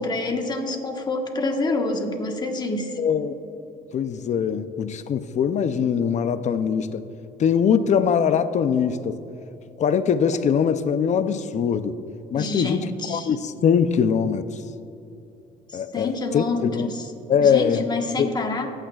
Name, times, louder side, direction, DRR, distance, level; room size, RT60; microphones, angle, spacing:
voice 1, 0.0-2.9 12.4-13.3 15.9-17.0 17.4-18.7, left 2 dB, 25° left, 3 dB, 1.3 m, -27 dB
voice 2, 3.0-3.4 3.9-7.0 7.4-9.2 9.8-12.0 12.3-14.5 15.7-16.9 17.3-17.9 18.2-18.4, left 7 dB, 45° left, 12 dB, 0.5 m, -22 dB
25.0 x 9.0 x 2.4 m, 2.9 s
cardioid pair, 110°, 17 cm